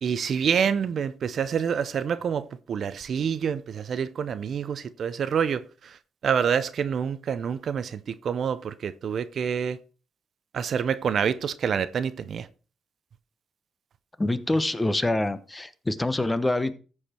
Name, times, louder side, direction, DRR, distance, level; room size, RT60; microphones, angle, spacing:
voice 1, 0.0-6.0 6.2-9.8 10.5-12.5, right 7 dB, 55° right, 0.6 m, -27 dB
voice 2, 14.2-16.7, left 2 dB, 15° left, 0.9 m, -25 dB
14.0 x 4.8 x 4.4 m
cardioid pair, 90°, 0 cm